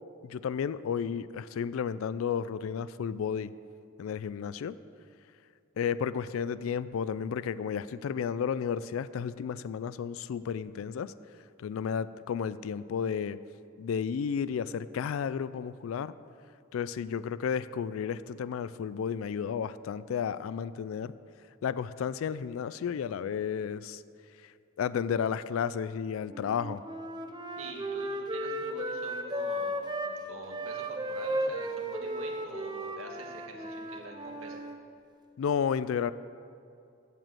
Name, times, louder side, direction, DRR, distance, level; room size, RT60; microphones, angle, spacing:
voice 1, 0.2-3.5 4.0-4.8 5.8-11.1 11.6-13.4 13.8-16.1 16.7-21.1 21.6-24.0 24.8-26.8 35.4-36.1, left 7 dB, 85° left, 16 dB, 0.3 m, -32 dB
Wind instrument woodwind instrument, 26.3-30.2 30.5-34.8, right 1 dB, 20° right, 0.6 m, -35 dB
voice 2, 27.6-34.6, right 2 dB, 90° right, 2 dB, 1.6 m, -46 dB
14.5 x 5.0 x 7.7 m, 2.5 s
head